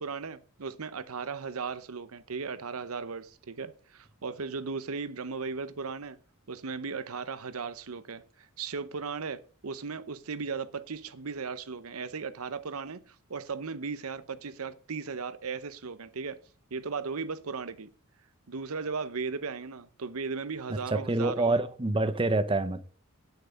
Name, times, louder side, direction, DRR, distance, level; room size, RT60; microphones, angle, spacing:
voice 1, 0.0-6.2 6.5-16.4 16.7-17.9 18.5-21.5, right 5 dB, 75° right, 0.8 m, -36 dB
voice 2, 20.9-22.8, right 2 dB, 25° right, 0.8 m, -26 dB
9.3 x 8.0 x 5.2 m
head